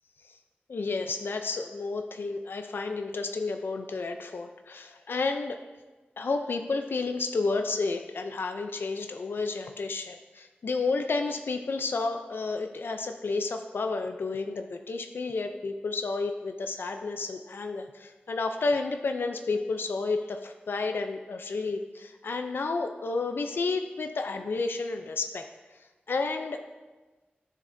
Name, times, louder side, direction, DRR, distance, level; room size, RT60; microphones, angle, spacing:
voice 1, 0.7-5.6 6.2-25.5 26.1-26.6, left 3 dB, 80° left, 6 dB, 0.4 m, -31 dB
10.5 x 6.4 x 2.6 m, 1.2 s
wide cardioid pair, 95°, 4 cm